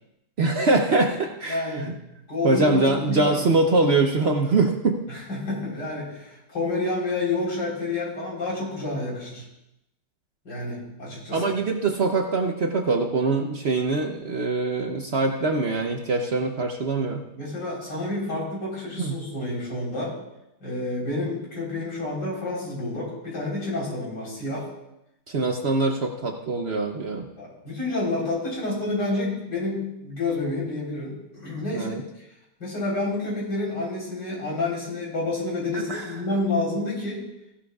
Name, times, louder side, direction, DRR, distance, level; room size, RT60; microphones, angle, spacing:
voice 1, 0.4-1.9 2.4-5.0 11.3-17.2 19.0-19.2 25.3-27.3 31.7-32.0 35.7-36.1, right 3 dB, 50° right, 3 dB, 0.8 m, -23 dB
voice 2, 1.5-1.9 2.3-3.5 5.1-9.4 10.4-11.4 17.3-20.2 20.6-24.7 27.4-32.0 32.6-37.2, left 2 dB, 85° left, -4 dB, 4.6 m, -29 dB
16.0 x 11.5 x 2.4 m, 0.86 s
omnidirectional pair, 1.8 m